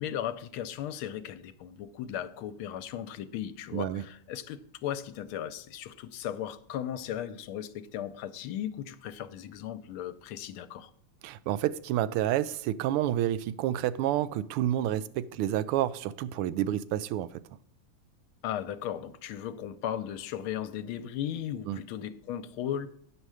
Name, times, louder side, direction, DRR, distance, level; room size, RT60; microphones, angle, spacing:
voice 1, 0.0-10.9 18.4-22.9, left 10 dB, 80° left, 1.4 m, -36 dB
voice 2, 3.7-4.0 11.2-17.4 21.7-21.8, right 12 dB, 85° right, 1.5 m, -29 dB
9.0 x 6.5 x 4.7 m
omnidirectional pair, 2.4 m